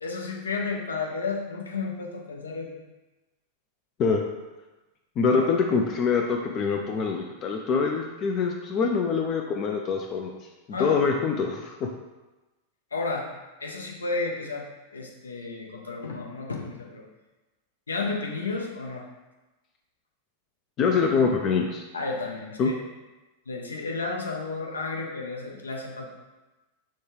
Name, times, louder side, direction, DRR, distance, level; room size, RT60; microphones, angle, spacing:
voice 1, 0.0-2.8 5.3-5.5 10.7-11.1 12.9-13.3 13.6-17.0 17.9-19.1 21.9-22.8 23.5-26.1, left 3 dB, 75° left, 0 dB, 0.7 m, -32 dB
voice 2, 5.2-10.3 10.7-11.9 20.8-21.8 22.6-22.7, left 5 dB, 35° left, 3 dB, 0.4 m, -24 dB
6.4 x 2.2 x 3.2 m, 1.1 s
figure-of-eight pair, 90°, 0 cm